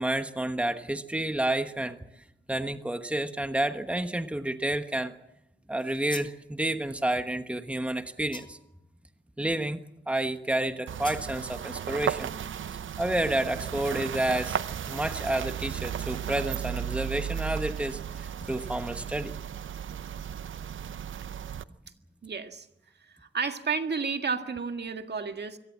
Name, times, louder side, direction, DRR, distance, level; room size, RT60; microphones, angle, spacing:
voice 1, 0.0-2.0 2.5-5.1 5.7-8.6 9.4-9.8 10.1-12.3 13.0-14.6 14.9-19.4, right 1 dB, 5° right, 9 dB, 1.3 m, -30 dB
sound 1, 5.8-6.4 8.3-8.8 11.0-11.3, left 2 dB, 25° left, 1.5 m, -43 dB
sound 2, 10.9-21.6, right 8 dB, 75° right, 0.7 m, -35 dB
voice 2, 22.2-22.7 23.0-25.6, right 5 dB, 60° right, 7 dB, 1.8 m, -32 dB
24.0 x 18.0 x 7.4 m, 0.82 s
cardioid pair, 75°, 20 cm